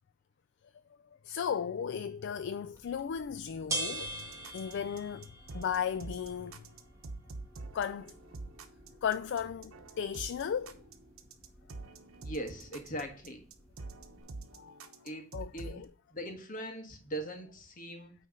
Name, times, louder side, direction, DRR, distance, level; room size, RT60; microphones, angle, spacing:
voice 1, 1.2-4.1 4.5-5.3 5.5-6.6 7.7-8.1 9.0-10.7 14.5-14.8 15.3-15.9, left 7 dB, 55° left, 0.3 m, -35 dB
sound 1, 2.7-14.2, right 1 dB, 15° right, 1.6 m, -45 dB
sound 2, 4.1-15.8, right 3 dB, 75° right, 1.0 m, -47 dB
voice 2, 12.2-13.4 15.0-15.3 15.5-15.8 16.1-18.1, right 1 dB, 40° left, 1.5 m, -40 dB
9.3 x 3.4 x 5.2 m
head